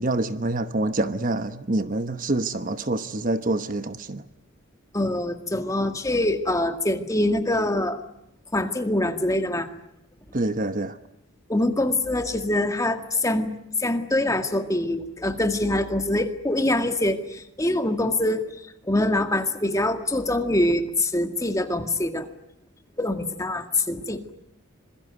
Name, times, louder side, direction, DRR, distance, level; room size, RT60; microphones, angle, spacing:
voice 1, 0.0-4.2 10.3-11.0, right 2 dB, 40° right, 1.1 m, -26 dB
voice 2, 4.9-8.0 8.5-9.7 11.5-13.5 13.8-18.5 18.9-22.3 23.0-24.2, left 1 dB, 15° left, 1.9 m, -24 dB
26.5 x 22.0 x 9.2 m
head